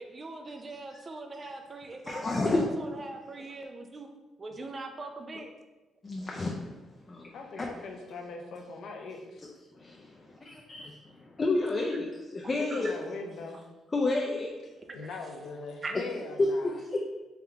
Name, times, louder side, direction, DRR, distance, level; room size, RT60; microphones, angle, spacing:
voice 1, 0.0-4.1 4.4-5.5 11.9-12.0 12.4-12.9 14.9-15.2 15.8-16.0, right 3 dB, 35° right, 5 dB, 0.4 m, -41 dB
voice 2, 2.1-2.6 3.0-3.1 6.0-6.7 7.1-7.3 7.6-7.7 9.8-10.1 10.7-10.8 11.4-12.9 13.9-14.5 16.4-17.0, left 2 dB, 30° left, -1 dB, 0.5 m, -29 dB
voice 3, 7.3-9.4 12.6-13.6 14.9-16.8, left 3 dB, 70° left, 2 dB, 0.7 m, -41 dB
3.5 x 3.3 x 3.6 m, 1.1 s
cardioid pair, 90°, 0 cm